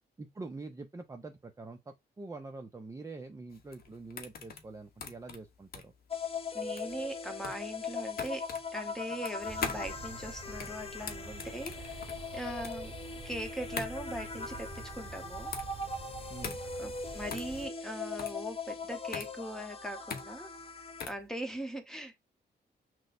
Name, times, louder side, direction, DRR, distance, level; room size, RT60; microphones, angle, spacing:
voice 1, 0.2-5.9 16.3-16.6, right 3 dB, 20° right, 0.5 m, -45 dB
sound 1, 3.5-21.3, left 5 dB, 65° left, 0.9 m, -43 dB
sound 2, 6.1-21.0, left 4 dB, 35° left, 0.6 m, -40 dB
voice 2, 6.5-12.1 12.3-12.9 13.2-15.5 16.8-20.5 21.0-22.2, right 1 dB, 5° left, 1.0 m, -40 dB
sound 3, 9.4-17.7, right 3 dB, 40° right, 1.6 m, -47 dB
6.0 x 2.1 x 2.5 m
cardioid pair, 110°, 17 cm